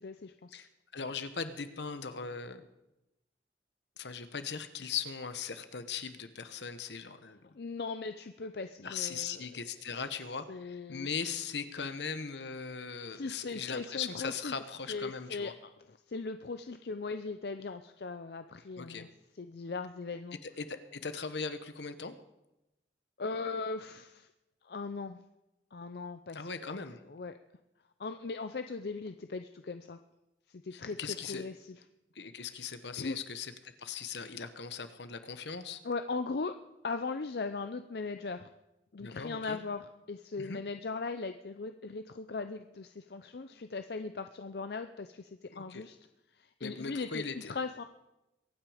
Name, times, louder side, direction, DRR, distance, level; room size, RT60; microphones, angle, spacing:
voice 1, 0.0-0.6 7.5-9.4 10.5-11.1 13.1-14.6 14.9-15.5 15.8-19.1 19.3-20.4 23.2-24.3 24.6-25.2 25.7-26.8 27.1-27.4 28.0-30.0 30.5-31.7 33.0-33.2 35.8-36.6 36.8-38.5 38.9-45.3 45.6-46.0 46.4-47.8, left 4 dB, 60° left, 9 dB, 0.5 m, -39 dB
voice 2, 0.5-2.7 4.0-7.4 8.8-15.5 18.8-19.1 20.4-22.2 26.3-27.0 30.7-31.4 32.1-35.8 39.0-39.6 40.4-40.6 45.5-45.8 46.6-47.5, left 6 dB, 80° left, 10 dB, 1.0 m, -39 dB
23.0 x 9.2 x 5.0 m, 0.95 s
head